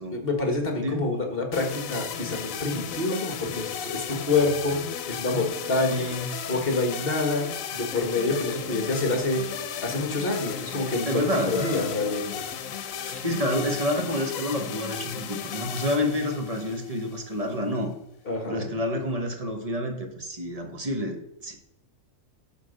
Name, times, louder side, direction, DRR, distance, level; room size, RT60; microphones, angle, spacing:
voice 1, 0.1-6.1 6.4-9.4 9.8-12.4 13.0-13.2 18.3-18.7, left 3 dB, 45° left, 3 dB, 1.7 m, -27 dB
sound 1, 1.5-17.5, left 8 dB, 80° left, 1.1 m, -35 dB
voice 2, 5.8-6.3 11.0-11.9 13.2-17.9 18.5-21.6, left 1 dB, 30° right, 4 dB, 1.2 m, -29 dB
11.0 x 3.7 x 6.4 m, 0.84 s
omnidirectional pair, 1.4 m